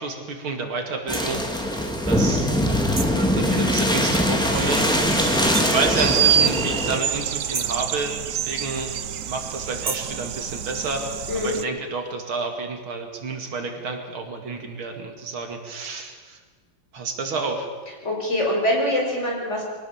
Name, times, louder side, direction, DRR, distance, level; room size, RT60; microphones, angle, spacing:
voice 1, 0.0-1.4 2.1-2.5 3.2-4.9 5.6-8.9 9.3-11.0 11.4-16.4 16.9-17.7, right 4 dB, 85° right, 4 dB, 3.2 m, -29 dB
sound 1, 1.1-7.0, equal, ahead, 2.1 m, -22 dB
sound 2, 1.1-1.3 3.0-3.2 5.5-5.8 7.5-7.8 9.8-10.2, right 4 dB, 30° right, 0.8 m, -31 dB
sound 3, 4.5-11.6, right 9 dB, 65° right, 0.8 m, -27 dB
voice 2, 11.3-11.6 18.0-19.6, left 1 dB, 35° left, -2 dB, 5.9 m, -24 dB
23.5 x 17.5 x 7.2 m, 1.4 s
omnidirectional pair, 2.2 m